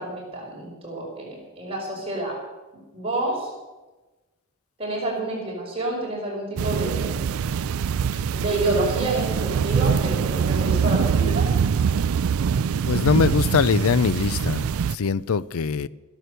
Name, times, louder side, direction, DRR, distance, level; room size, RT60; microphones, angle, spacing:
voice 1, 0.0-2.4 2.9-3.5 4.8-7.3 8.3-11.5, right 2 dB, 25° right, 4.9 m, -28 dB
sound 1, 6.6-15.0, right 6 dB, 75° right, 0.4 m, -23 dB
voice 2, 12.9-15.9, left 5 dB, 80° left, 0.5 m, -22 dB
14.0 x 12.5 x 6.8 m
head